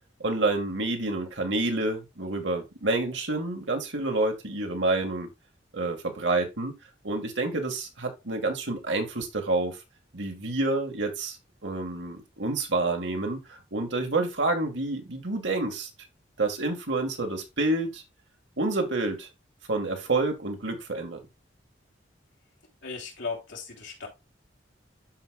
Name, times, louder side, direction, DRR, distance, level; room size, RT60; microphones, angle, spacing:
voice 1, 0.2-5.3 5.7-6.7 7.0-9.8 10.1-11.4 11.6-15.9 16.4-18.0 18.6-19.3 19.7-21.2, right 2 dB, 75° right, 2.0 m, -28 dB
voice 2, 22.8-24.1, left 4 dB, 80° left, 3.4 m, -36 dB
12.5 x 5.0 x 2.4 m
head